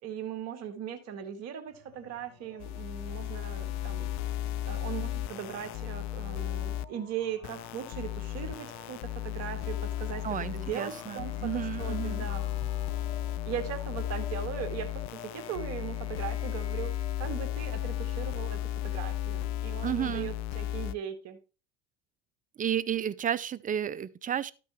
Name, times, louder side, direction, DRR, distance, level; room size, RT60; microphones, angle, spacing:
voice 1, 0.0-4.1 4.6-10.2 10.5-12.4 13.5-16.9 17.2-21.4, right 9 dB, 55° right, 1.9 m, -39 dB
sound 1, 1.7-19.2, left 6 dB, 85° left, 3.3 m, -51 dB
sound 2, 2.6-6.9 7.4-20.9, left 13 dB, 60° left, 0.5 m, -34 dB
voice 2, 10.2-12.3 19.8-20.3 22.6-24.5, right 9 dB, 25° right, 0.5 m, -32 dB
12.5 x 6.1 x 3.1 m
supercardioid pair, 85°, 31 cm